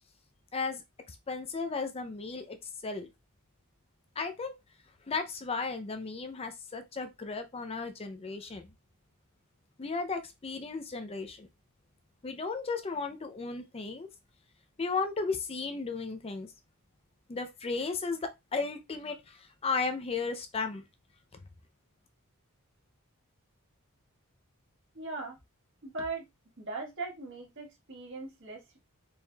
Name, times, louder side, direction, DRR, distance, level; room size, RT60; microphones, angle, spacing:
voice 1, 1.1-2.6 2.8-3.1 4.2-4.6 5.1-8.7 9.8-11.5 12.2-14.1 14.8-16.5 17.3-20.8, left 4 dB, 25° left, 0.5 m, -35 dB
voice 2, 24.9-25.4 25.8-26.2 26.6-28.8, right 3 dB, 55° right, 1.6 m, -39 dB
4.3 x 3.5 x 2.3 m
head